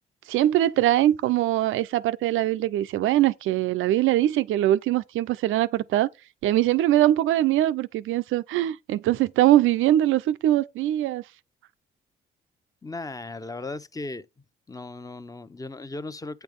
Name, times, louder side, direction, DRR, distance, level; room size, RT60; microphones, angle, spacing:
voice 1, 0.3-6.1 6.4-11.2, right 13 dB, 85° right, 0.6 m, -22 dB
voice 2, 12.8-14.3 14.7-16.4, left 2 dB, 15° left, 0.9 m, -36 dB
8.7 x 4.5 x 5.2 m
cardioid pair, 90°, 20 cm